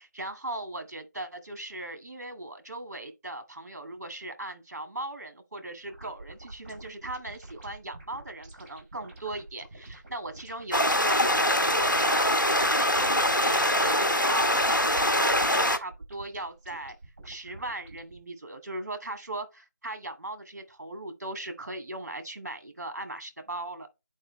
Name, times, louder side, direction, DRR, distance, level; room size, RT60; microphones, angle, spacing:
voice 1, 0.0-17.0 17.2-23.9, right 2 dB, 50° right, 1.9 m, -38 dB
sound 1, 5.8-18.2, right 2 dB, 30° right, 5.3 m, -48 dB
sound 2, 10.7-15.8, left 1 dB, 90° left, 1.4 m, -23 dB
9.6 x 4.6 x 3.2 m
figure-of-eight pair, 160°, 10 cm